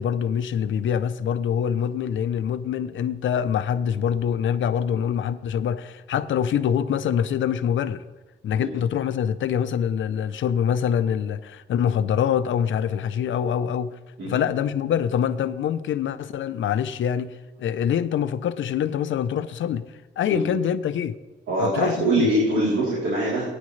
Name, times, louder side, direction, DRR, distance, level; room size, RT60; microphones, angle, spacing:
voice 1, 0.0-8.0 8.4-14.0 14.2-17.3 17.6-19.8 20.2-21.2 21.6-22.3, left 8 dB, 80° left, 0.6 m, -25 dB
voice 2, 21.5-23.5, right 1 dB, 90° right, 3.4 m, -23 dB
19.5 x 9.6 x 3.2 m
cardioid pair, 115°, 20 cm